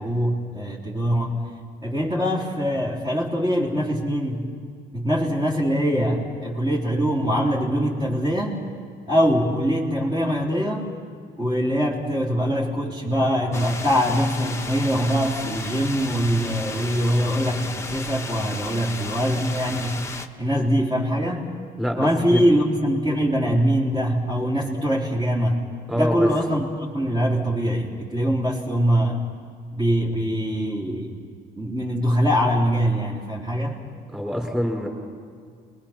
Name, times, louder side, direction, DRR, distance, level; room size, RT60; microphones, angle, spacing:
voice 1, 0.0-1.4 1.8-4.4 4.9-8.6 9.1-10.9 11.4-20.0 20.4-21.5 22.0-25.6 25.9-29.2 29.7-31.2 31.6-33.8, equal, 25° right, -5 dB, 3.7 m, -23 dB
sound 1, 13.5-20.3, left 3 dB, 15° left, 1.3 m, -34 dB
voice 2, 21.8-22.4 25.9-26.3 34.1-34.9, equal, ahead, 0 dB, 4.2 m, -25 dB
28.5 x 21.5 x 5.9 m, 2.2 s
cardioid pair, 110°, 17 cm